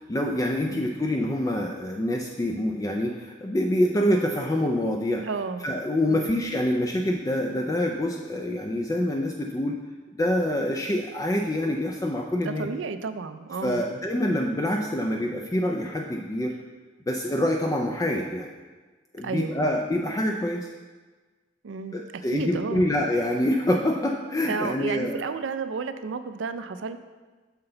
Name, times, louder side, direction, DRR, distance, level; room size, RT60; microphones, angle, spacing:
voice 1, 0.1-5.3 5.6-9.7 10.1-12.7 13.6-16.5 17.1-18.5 19.1-20.7 21.9-25.3, left 1 dB, 15° left, 1 dB, 0.3 m, -26 dB
voice 2, 5.2-5.6 6.1-6.3 12.4-13.8 19.2-19.7 21.6-22.0 22.3-22.9 24.5-27.0, right 4 dB, 75° right, 10 dB, 0.4 m, -32 dB
6.7 x 5.8 x 3.8 m, 1.3 s
head